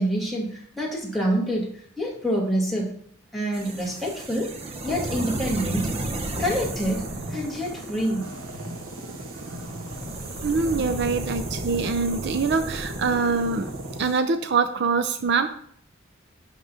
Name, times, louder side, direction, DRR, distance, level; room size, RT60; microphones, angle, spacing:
voice 1, 0.0-2.9 3.3-5.9 6.4-8.3, equal, ahead, -4 dB, 2.1 m, -27 dB
sound 1, 3.5-14.2, right 2 dB, 30° right, 1.0 m, -35 dB
sound 2, 4.8-14.1, right 1 dB, 80° right, 1.7 m, -37 dB
voice 2, 10.4-13.7 14.0-15.5, right 4 dB, 55° right, 9 dB, 0.5 m, -24 dB
11.0 x 3.7 x 5.7 m, 0.62 s
head